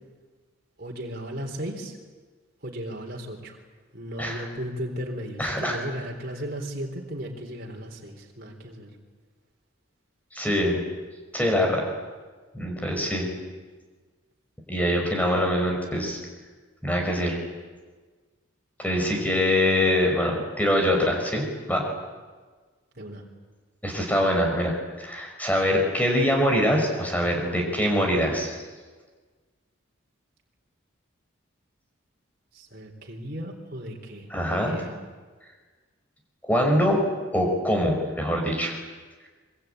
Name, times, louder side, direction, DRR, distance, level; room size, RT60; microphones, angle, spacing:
voice 1, 0.8-2.0 2.6-3.6 3.9-8.9 23.0-23.2 32.5-35.0, equal, 45° right, 1 dB, 3.9 m, -36 dB
voice 2, 5.4-5.8 10.3-10.8 11.3-11.9 12.5-13.3 14.7-16.2 16.8-17.4 18.8-21.8 23.8-28.6 34.3-34.8 36.4-37.0 37.3-38.8, equal, 10° left, 1 dB, 5.2 m, -24 dB
25.0 x 24.0 x 9.2 m, 1.4 s
head